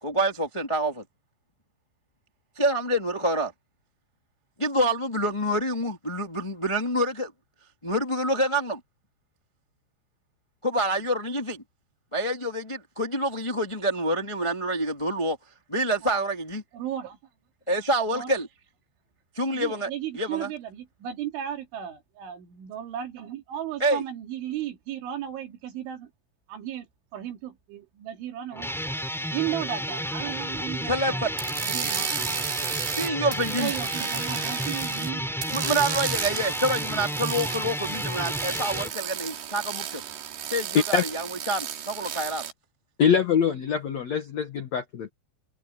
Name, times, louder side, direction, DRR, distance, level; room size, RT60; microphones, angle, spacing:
voice 1, 0.0-1.0 2.5-3.5 4.6-7.3 7.8-8.8 10.6-11.6 12.1-15.4 15.7-16.6 17.7-18.5 19.3-20.5 23.8-24.0 30.9-31.3 33.0-33.7 35.5-40.0 40.5-42.5, right 1 dB, 30° left, 0.5 m, -27 dB
voice 2, 16.7-17.2 18.1-18.3 19.4-26.1 26.5-28.7 29.3-31.2 31.6-32.1 33.6-35.3, right 11 dB, 85° right, 4.9 m, -35 dB
sound 1, 28.5-38.9, equal, ahead, 7.2 m, -32 dB
sound 2, 31.4-35.1 35.4-42.5, right 9 dB, 70° right, 4.5 m, -33 dB
voice 3, 43.0-45.1, left 7 dB, 75° left, 1.6 m, -24 dB
omnidirectional pair, 5.3 m